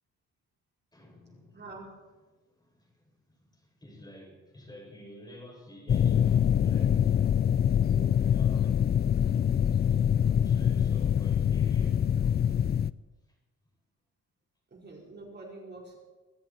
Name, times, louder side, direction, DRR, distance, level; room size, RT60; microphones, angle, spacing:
voice 1, 0.9-1.8 2.6-7.1 7.6-8.9 10.4-12.0, equal, 15° left, -1 dB, 7.3 m, -50 dB
voice 2, 1.5-1.9 14.7-16.0, right 3 dB, 35° right, -1 dB, 4.8 m, -45 dB
sound 1, 5.9-12.9, left 9 dB, 35° left, 0.4 m, -24 dB
24.0 x 13.0 x 4.6 m, 1.2 s
cardioid pair, 90°, 30 cm